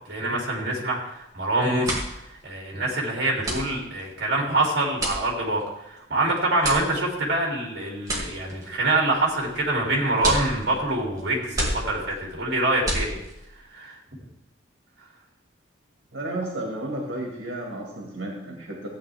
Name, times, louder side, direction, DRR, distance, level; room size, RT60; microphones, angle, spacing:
voice 1, 0.1-13.2 13.7-14.0, right 2 dB, 60° right, -2 dB, 3.0 m, -25 dB
sound 1, 1.1-1.4 1.7-13.6, right 1 dB, 20° right, 2.6 m, -32 dB
voice 2, 16.1-18.9, right 1 dB, 85° right, -1 dB, 2.0 m, -32 dB
14.5 x 9.1 x 3.5 m, 0.86 s
head